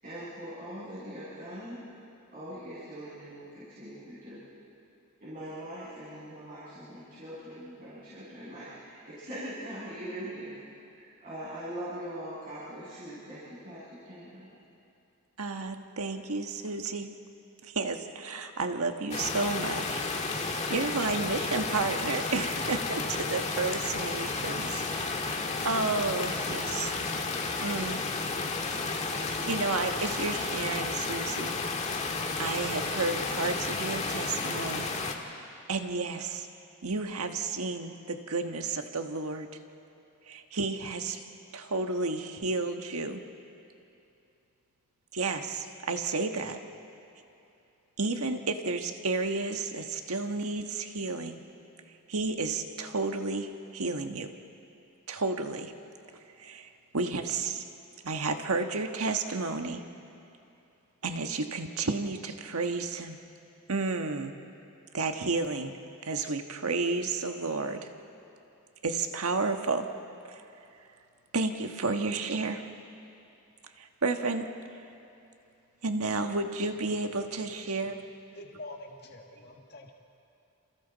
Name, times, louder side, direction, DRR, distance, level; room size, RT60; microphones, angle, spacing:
voice 1, 0.0-1.8 2.3-4.4 5.2-14.5, right 1 dB, 40° right, -12 dB, 6.9 m, -42 dB
voice 2, 15.4-17.1 17.6-25.3 25.6-27.0 27.6-28.0 29.2-31.5 32.4-34.9 35.7-36.5 36.8-39.5 40.3-41.3 41.5-43.2 45.1-46.6 48.0-51.4 52.1-54.3 55.1-55.7 56.4-57.7 58.0-59.8 61.0-63.2 63.7-64.4 64.9-65.7 66.0-67.9 68.8-69.9 70.3-70.4 71.3-72.6 73.8-74.5 75.8-78.0, right 3 dB, 80° right, 6 dB, 1.4 m, -32 dB
sound 1, 19.1-35.1, left 3 dB, 30° left, 1.6 m, -32 dB
voice 3, 76.7-77.1 77.7-77.9 78.3-79.9, left 2 dB, 50° left, 2 dB, 1.7 m, -46 dB
28.5 x 28.5 x 4.1 m, 2.7 s
head